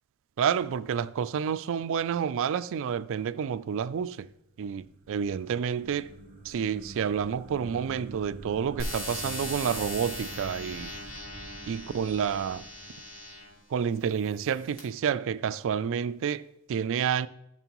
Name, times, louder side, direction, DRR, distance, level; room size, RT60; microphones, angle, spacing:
voice 1, 0.4-4.3 4.6-6.1 6.4-10.9 11.7-12.7 13.7-17.3, right 7 dB, 65° right, 0.3 m, -29 dB
sound 1, 4.5-13.8, right 2 dB, 40° right, 0.8 m, -47 dB
sound 2, 8.8-13.5 14.2-14.8, left 1 dB, 70° left, 2.6 m, -39 dB
13.0 x 6.0 x 3.0 m
head